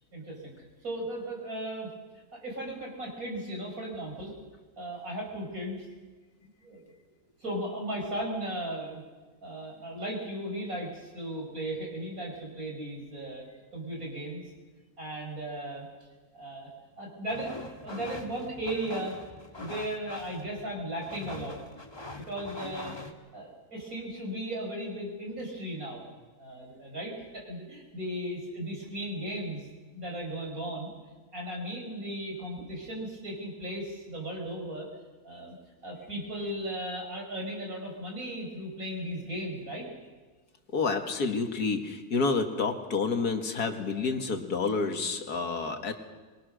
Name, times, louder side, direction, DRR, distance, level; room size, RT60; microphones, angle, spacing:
voice 1, 0.1-0.5 0.8-1.9 2.3-4.3 4.8-5.9 6.6-6.9 7.4-9.0 9.4-14.4 15.0-15.9 16.3-16.7 17.0-19.2 19.5-21.6 22.1-23.0 23.3-26.0 26.4-29.7 29.9-30.9 31.3-34.9 35.2-35.6 35.8-39.9, right 1 dB, 65° right, 0 dB, 6.1 m, -36 dB
sound 1, 17.3-23.1, left 2 dB, 15° left, 1.5 m, -43 dB
voice 2, 40.7-45.9, left 4 dB, 85° left, 5 dB, 2.4 m, -29 dB
24.5 x 22.0 x 6.4 m, 1.3 s
omnidirectional pair, 1.6 m